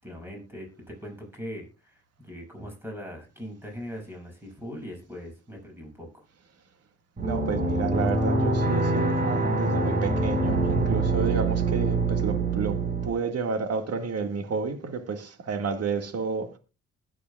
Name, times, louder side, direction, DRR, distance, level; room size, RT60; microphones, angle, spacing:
voice 1, 0.0-6.2, equal, 5° right, 6.9 m, -40 dB
sound 1, 7.2-13.1, right 3 dB, 35° right, 4.6 m, -25 dB
voice 2, 7.2-16.6, right 5 dB, 55° right, 1.8 m, -31 dB
20.5 x 8.5 x 2.3 m
cardioid pair, 90°, 30 cm